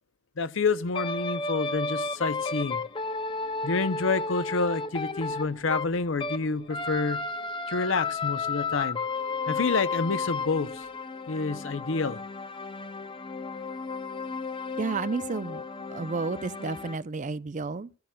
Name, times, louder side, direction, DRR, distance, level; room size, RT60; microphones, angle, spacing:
voice 1, 0.4-2.8 3.6-7.2 7.7-9.0 9.5-10.8 11.3-12.2, left 4 dB, 60° left, 0.7 m, -28 dB
sound 1, 0.9-6.4 6.7-17.0, left 4 dB, 25° left, 0.5 m, -33 dB
sound 2, 1.9-11.0, right 4 dB, 80° left, 5.4 m, -52 dB
voice 2, 14.8-15.6 15.9-18.0, right 4 dB, 35° right, 0.5 m, -31 dB
14.5 x 11.5 x 2.3 m
head